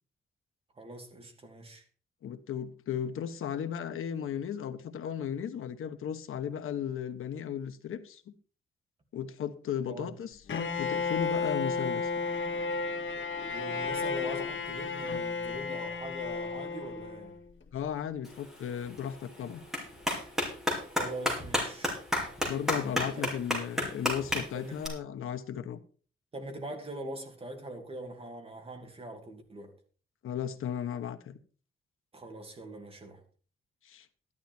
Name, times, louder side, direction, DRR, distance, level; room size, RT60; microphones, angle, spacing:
voice 1, 0.7-1.8 9.9-10.1 13.4-17.4 20.9-21.9 22.7-23.3 24.5-24.7 26.3-29.7 32.1-33.2, right 1 dB, 25° right, 2.8 m, -42 dB
voice 2, 2.2-8.3 9.1-12.1 17.7-19.6 22.4-25.8 30.2-31.4 33.8-34.1, left 8 dB, 85° left, 1.3 m, -35 dB
Bowed string instrument, 10.5-17.4, left 4 dB, 65° left, 2.2 m, -33 dB
Clapping, 18.2-24.9, left 1 dB, ahead, 4.9 m, -33 dB
13.0 x 11.5 x 4.5 m
wide cardioid pair, 175°, 21 cm